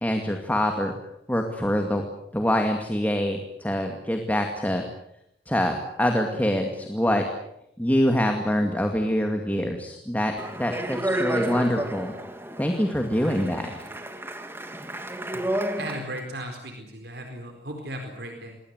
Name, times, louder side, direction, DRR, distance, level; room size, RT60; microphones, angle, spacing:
voice 1, 0.0-0.9 1.3-2.0 2.3-4.8 5.5-7.2 7.8-12.1 12.6-13.7, equal, 10° left, 4 dB, 2.3 m, -25 dB
Speech, 10.4-16.2, right 1 dB, 15° right, 2.0 m, -31 dB
voice 2, 15.3-18.6, right 1 dB, 65° right, 4 dB, 4.4 m, -37 dB
27.5 x 21.0 x 8.1 m, 0.79 s
head